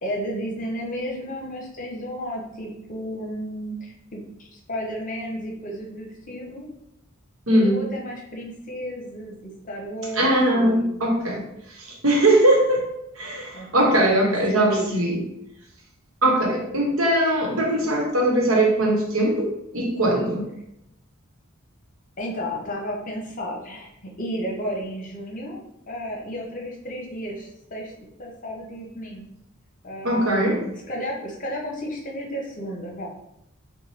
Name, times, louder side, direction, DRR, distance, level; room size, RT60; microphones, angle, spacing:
voice 1, 0.0-6.7 7.5-11.0 13.5-14.9 22.2-25.6 25.9-27.9 28.2-29.3 29.8-33.1, equal, 40° left, 0 dB, 0.8 m, -33 dB
voice 2, 7.5-7.8 10.1-11.4 11.8-12.9 13.2-15.2 16.2-20.5 30.0-30.6, right 1 dB, 80° right, 0 dB, 1.0 m, -20 dB
5.3 x 2.2 x 3.4 m, 0.83 s
head